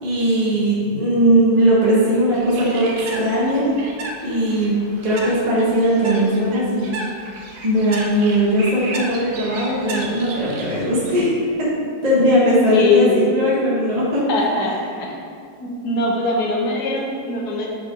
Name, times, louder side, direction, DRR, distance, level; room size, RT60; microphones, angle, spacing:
voice 1, 0.0-3.7 4.2-6.9 7.6-14.2, equal, 25° right, -7 dB, 1.2 m, -19 dB
Bird, 2.3-11.2, right 2 dB, 60° right, 1.1 m, -34 dB
voice 2, 12.7-13.2 14.3-15.1 15.6-17.7, left 3 dB, 70° left, -2 dB, 1.6 m, -21 dB
5.9 x 4.7 x 5.0 m, 2.2 s
omnidirectional pair, 1.8 m